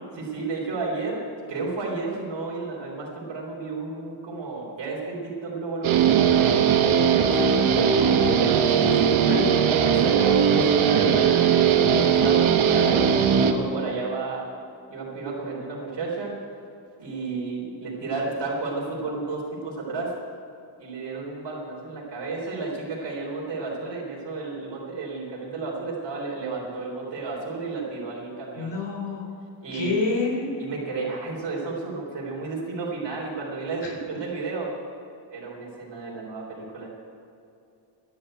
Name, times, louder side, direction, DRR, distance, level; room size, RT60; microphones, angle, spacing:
voice 1, 0.1-1.2 1.5-6.6 6.9-9.2 9.8-14.4 14.9-16.4 17.0-20.1 20.8-28.7 29.6-30.0 30.6-34.7 35.3-36.9, right 3 dB, 60° right, -4 dB, 3.9 m, -32 dB
Guitar, 5.8-13.5, right 7 dB, 85° right, 1.2 m, -19 dB
voice 2, 28.6-29.3 29.7-30.7 33.8-33.9, left 3 dB, 60° left, 0 dB, 3.6 m, -27 dB
11.0 x 11.0 x 9.1 m, 2.7 s
cardioid pair, 75°, 47 cm